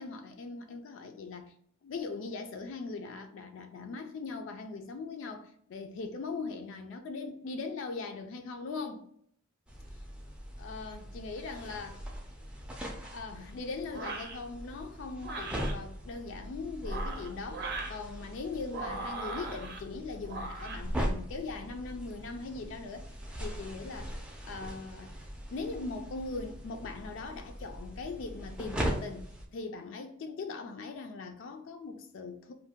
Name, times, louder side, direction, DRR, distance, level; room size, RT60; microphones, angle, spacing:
voice 1, 0.0-1.5 1.8-9.0 10.6-12.0 13.1-23.1 23.4-24.2 24.4-25.1 25.5-32.5, left 4 dB, 70° left, 0.3 m, -40 dB
sound 1, 9.7-29.5, equal, 5° right, 0.4 m, -40 dB
sound 2, 13.9-14.4 15.2-15.7 16.7-18.0 18.7-19.8 20.3-20.8, right 3 dB, 55° right, 0.6 m, -39 dB
2.6 x 2.1 x 3.4 m
head